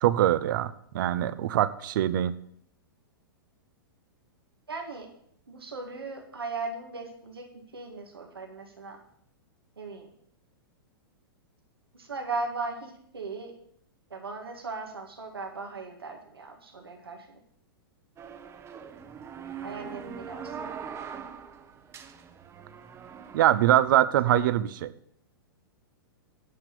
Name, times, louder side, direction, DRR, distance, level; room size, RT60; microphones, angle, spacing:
voice 1, 0.0-2.3 23.3-24.9, right 12 dB, 60° right, 15 dB, 0.8 m, -23 dB
voice 2, 4.7-5.1 5.5-9.0 9.8-10.1 11.9-13.5 14.1-17.3 19.6-20.7 24.3-24.4, right 3 dB, 90° right, 1 dB, 1.9 m, -38 dB
sound 1, 18.2-24.0, right 7 dB, 20° right, 0.9 m, -42 dB
9.7 x 6.0 x 6.7 m, 0.68 s
hypercardioid pair, 115°, 12 cm